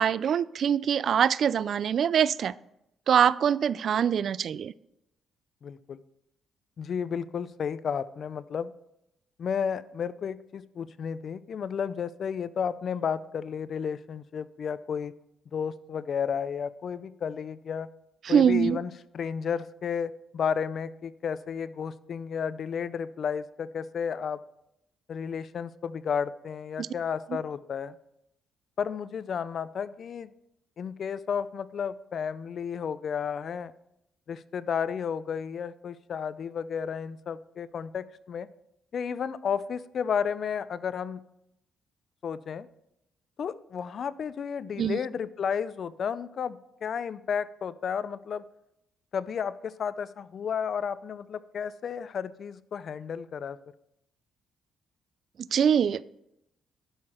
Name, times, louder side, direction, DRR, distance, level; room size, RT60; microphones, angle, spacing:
voice 1, 0.0-2.5 3.1-4.7 18.2-18.8 44.8-45.0 55.5-56.0, right 8 dB, 60° right, 0.3 m, -23 dB
voice 2, 5.6-6.0 6.8-8.7 9.4-15.1 15.5-17.9 18.3-24.4 25.1-27.9 28.8-30.3 30.8-33.7 34.3-38.5 38.9-41.2 42.2-42.7 43.4-48.4 49.1-53.6, left 7 dB, 55° left, 0.5 m, -32 dB
11.0 x 6.6 x 4.4 m
cardioid pair, 90°, 0 cm